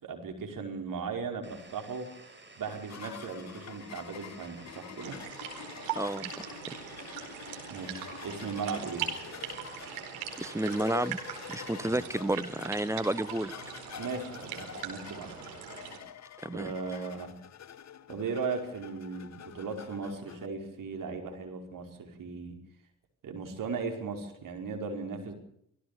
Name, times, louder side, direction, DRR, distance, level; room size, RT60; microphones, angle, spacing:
voice 1, 0.0-2.1 2.6-5.2 7.7-9.1 11.9-12.0 14.0-15.5 16.5-17.4 18.1-22.6 23.2-25.3, right 5 dB, 45° right, 3 dB, 5.2 m, -37 dB
sound 1, 1.4-12.2, right 3 dB, 25° right, 5.5 m, -53 dB
sound 2, 2.7-20.5, left 9 dB, 40° left, 1.2 m, -47 dB
sound 3, 5.0-16.0, right 8 dB, 65° right, 4.6 m, -41 dB
voice 2, 5.9-6.8 10.4-11.2 11.5-13.5 16.4-16.7, right 1 dB, 5° right, 16 dB, 0.9 m, -31 dB
26.0 x 16.5 x 7.0 m, 0.71 s
figure-of-eight pair, 45°, 43 cm